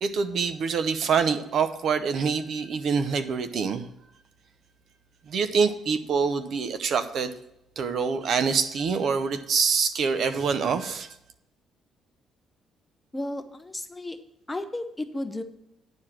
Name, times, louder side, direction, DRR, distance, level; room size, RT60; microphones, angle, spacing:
voice 1, 0.0-3.9 5.3-7.3 7.8-11.1, right 5 dB, 55° right, 10 dB, 0.8 m, -25 dB
voice 2, 13.1-14.2 14.5-15.4, left 1 dB, 10° left, 8 dB, 0.8 m, -33 dB
9.6 x 4.9 x 7.3 m, 0.81 s
cardioid pair, 120°, 0 cm